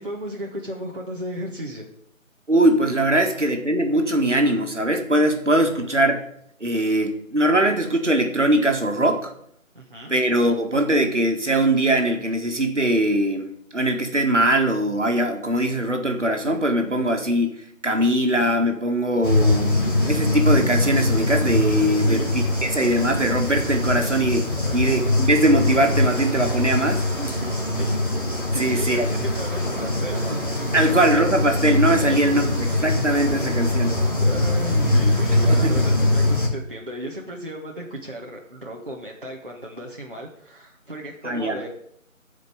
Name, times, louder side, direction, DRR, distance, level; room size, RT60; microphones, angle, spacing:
voice 1, 0.0-1.9 5.8-5.9 9.7-10.1 21.8-22.3 24.6-24.9 27.2-27.9 28.5-30.3 30.7-31.0 32.0-32.6 34.2-41.7, equal, 40° right, -2 dB, 1.3 m, -35 dB
voice 2, 2.5-6.2 6.6-9.3 10.1-24.5 24.7-27.1 28.6-29.3 30.7-34.0 35.5-35.8 41.2-41.6, right 1 dB, 60° right, 3 dB, 1.9 m, -21 dB
sound 1, 19.2-36.5, left 1 dB, 40° left, 2.3 m, -22 dB
12.0 x 5.2 x 7.0 m, 0.70 s
figure-of-eight pair, 170°, 41 cm